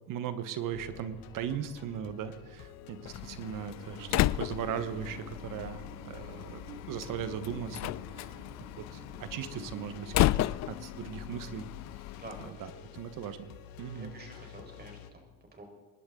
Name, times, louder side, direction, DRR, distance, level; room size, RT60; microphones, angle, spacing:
voice 1, 0.1-8.3 8.8-11.6 12.6-13.5 13.8-14.1, right 9 dB, 60° right, 11 dB, 1.4 m, -38 dB
sound 1, 0.7-15.1, left 10 dB, 70° left, 1.3 m, -50 dB
Slam, 3.1-12.5, left 17 dB, 50° left, 0.4 m, -34 dB
sound 2, 4.0-9.9, right 3 dB, 75° right, 3.9 m, -50 dB
voice 2, 12.1-12.7 13.9-15.6, right 2 dB, 25° right, 3 dB, 4.7 m, -49 dB
25.0 x 11.5 x 3.9 m, 1.4 s
supercardioid pair, 95°, 37 cm